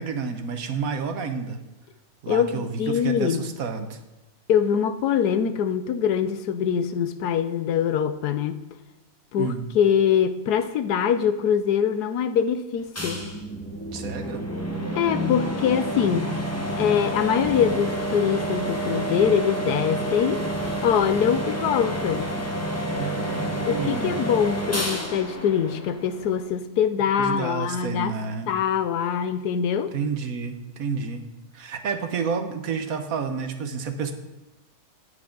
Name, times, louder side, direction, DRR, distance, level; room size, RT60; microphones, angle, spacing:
voice 1, 0.0-1.6 2.2-4.0 9.4-9.7 13.9-14.5 22.9-24.3 27.2-28.5 29.9-31.2 31.5-34.1, right 5 dB, 65° right, 8 dB, 1.4 m, -30 dB
voice 2, 2.3-3.4 4.5-8.6 9.3-13.3 15.0-16.3 16.8-20.4 20.8-22.3 23.7-28.1 28.5-29.9, left 8 dB, 85° left, 11 dB, 1.3 m, -23 dB
sound 1, 13.0-26.5, equal, 10° left, 1.2 m, -29 dB
14.5 x 9.6 x 3.8 m, 1.0 s
omnidirectional pair, 1.6 m